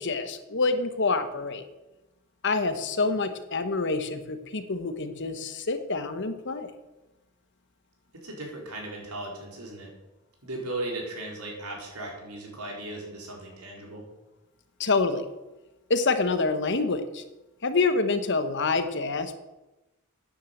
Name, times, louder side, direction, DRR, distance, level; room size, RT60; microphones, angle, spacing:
voice 1, 0.0-1.6 2.4-6.7 14.8-15.2 15.9-17.2 17.6-19.4, left 3 dB, 55° left, 9 dB, 1.2 m, -27 dB
voice 2, 8.2-9.9 10.4-14.0, right 2 dB, 90° right, -1 dB, 4.2 m, -37 dB
10.0 x 9.5 x 7.8 m, 1.0 s
head